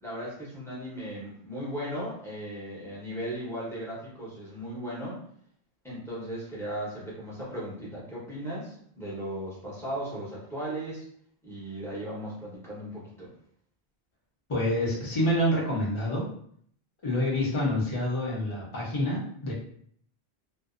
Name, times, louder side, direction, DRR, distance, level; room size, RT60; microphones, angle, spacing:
voice 1, 0.0-5.2 5.8-11.0 11.4-13.3, equal, 5° left, -8 dB, 0.8 m, -37 dB
voice 2, 14.5-16.2 17.0-19.5, left 1 dB, 30° left, -4 dB, 0.7 m, -27 dB
2.5 x 2.1 x 2.4 m, 0.63 s
omnidirectional pair, 1.1 m